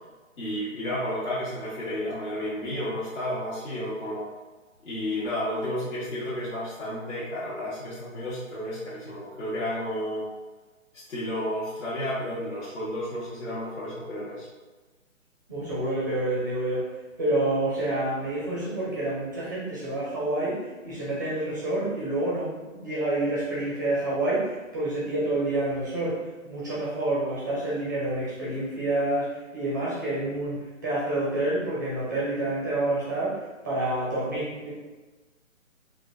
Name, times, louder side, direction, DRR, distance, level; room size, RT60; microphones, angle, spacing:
voice 1, 0.4-4.3 4.8-10.3 11.1-14.5, left 1 dB, 65° left, -9 dB, 1.0 m, -32 dB
voice 2, 15.5-16.9 17.2-34.7, right 1 dB, 15° right, -8 dB, 0.5 m, -28 dB
3.6 x 2.4 x 2.5 m, 1.2 s
hypercardioid pair, 145°, 40 cm